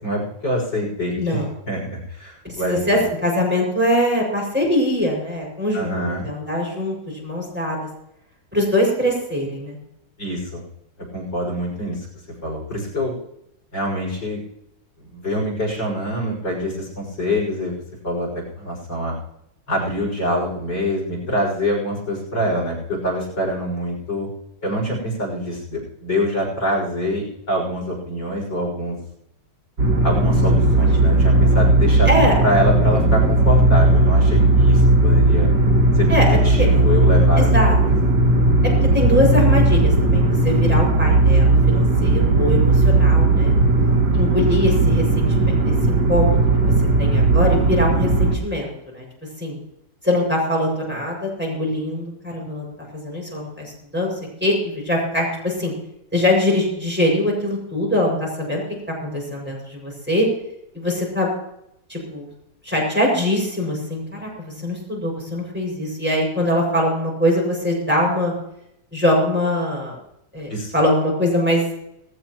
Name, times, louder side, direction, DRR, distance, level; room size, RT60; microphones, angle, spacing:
voice 1, 0.0-3.0 5.7-6.3 10.2-10.6 11.1-12.1 12.4-13.2 13.7-14.4 15.0-17.8 18.0-19.2 19.7-24.3 24.6-29.0 30.0-32.1 32.4-35.5 35.9-38.0 70.5-70.7, equal, 80° left, -1 dB, 7.0 m, -25 dB
voice 2, 1.2-1.5 2.4-7.9 8.5-9.8 32.0-32.4 36.1-36.3 36.6-36.7 37.4-37.8 38.9-43.5 44.1-46.4 47.0-49.0 49.4-49.6 50.0-54.1 54.4-55.7 56.1-58.6 59.0-60.3 60.7-61.3 61.9-62.3 62.6-68.3 68.9-70.0 70.3-71.6, left 1 dB, 5° right, -2 dB, 6.4 m, -22 dB
sound 1, 29.8-48.3, right 2 dB, 75° right, 3.0 m, -16 dB
18.5 x 16.5 x 3.1 m, 0.79 s
omnidirectional pair, 2.0 m